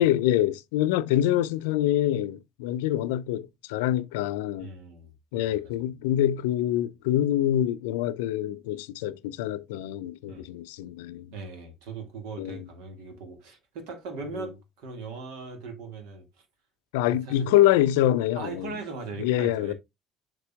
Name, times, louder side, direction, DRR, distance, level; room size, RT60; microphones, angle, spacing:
voice 1, 0.0-4.7 5.3-11.3 12.4-12.6 14.4-14.5 16.9-18.7 19.2-19.7, left 12 dB, 75° left, 0.4 m, -25 dB
voice 2, 4.6-5.6 10.3-10.5 11.3-16.2 17.3-17.5 18.3-19.7, right 4 dB, 70° right, 1.8 m, -39 dB
6.8 x 6.1 x 2.3 m
hypercardioid pair, 60°, 0 cm